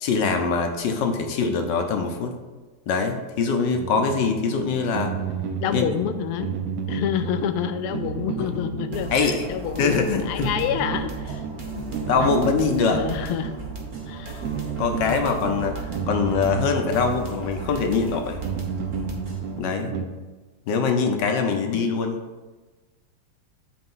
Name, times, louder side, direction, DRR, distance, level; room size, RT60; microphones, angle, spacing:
voice 1, 0.0-2.3 2.9-5.1 5.7-5.8 8.5-8.6 9.1-9.5 9.8-10.5 11.7-13.0 14.8-18.4 19.6-19.9 20.7-22.2, left 5 dB, 65° left, 5 dB, 1.3 m, -23 dB
sound 1, 3.7-20.1, right 6 dB, 75° right, 0.9 m, -32 dB
voice 2, 5.6-6.5 6.9-11.4 12.1-12.3 12.9-13.5 14.1-14.4, left 9 dB, 85° left, 9 dB, 1.5 m, -28 dB
sound 2, 8.9-19.6, right 2 dB, 30° right, 1.0 m, -38 dB
8.7 x 3.5 x 5.5 m, 1.3 s
omnidirectional pair, 2.4 m